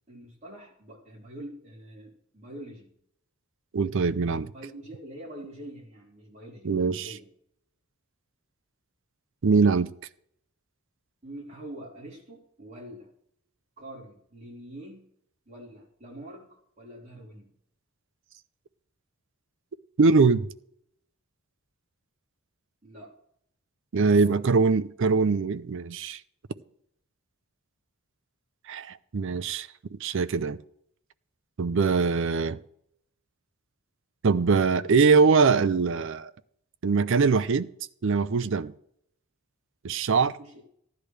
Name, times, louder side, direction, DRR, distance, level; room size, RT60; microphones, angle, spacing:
voice 1, 0.1-2.9 4.5-7.3 11.2-13.1 13.8-15.1 15.5-17.5 22.8-23.1 24.1-24.4 40.2-40.6, right 1 dB, 35° right, 4.1 m, -45 dB
voice 2, 3.7-4.5 6.6-7.1 9.4-9.9 20.0-20.5 23.9-26.2 28.7-30.6 31.6-32.6 34.2-36.3 36.8-37.7 38.0-38.7 39.8-40.4, right 4 dB, 60° right, 0.5 m, -22 dB
15.0 x 10.5 x 3.3 m
head